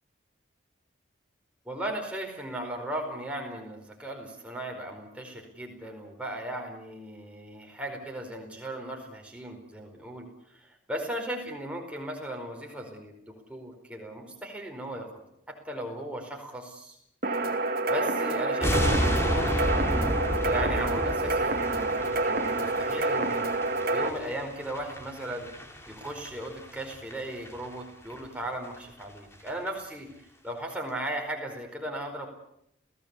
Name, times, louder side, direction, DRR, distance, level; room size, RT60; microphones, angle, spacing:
voice 1, 1.6-15.1 15.5-17.0 17.9-19.9 20.4-23.5 23.9-25.5 25.9-32.3, right 1 dB, 5° right, 1 dB, 4.7 m, -37 dB
sound 1, 17.2-24.1, right 2 dB, 45° right, 2.2 m, -28 dB
sound 2, 18.6-27.8 28.0-28.2 28.6-28.7 29.0-29.1 29.3-29.7 29.9-30.0, equal, 15° left, 3.0 m, -32 dB
28.5 x 17.0 x 8.4 m, 0.77 s
head